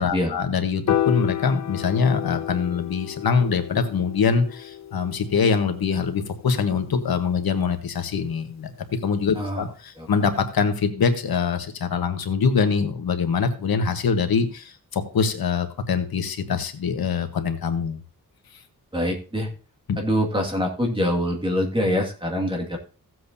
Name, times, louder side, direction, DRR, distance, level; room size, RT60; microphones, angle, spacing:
voice 1, 0.0-8.7 9.0-18.0 19.9-20.0, left 5 dB, 90° left, 7 dB, 1.2 m, -24 dB
Piano, 0.9-7.2, left 11 dB, 50° left, 0.5 m, -31 dB
voice 2, 9.3-9.7 10.0-10.1 18.9-19.5 20.0-22.8, equal, 15° right, 0 dB, 2.0 m, -24 dB
16.0 x 7.8 x 2.7 m, 0.36 s
wide cardioid pair, 180°, 35 cm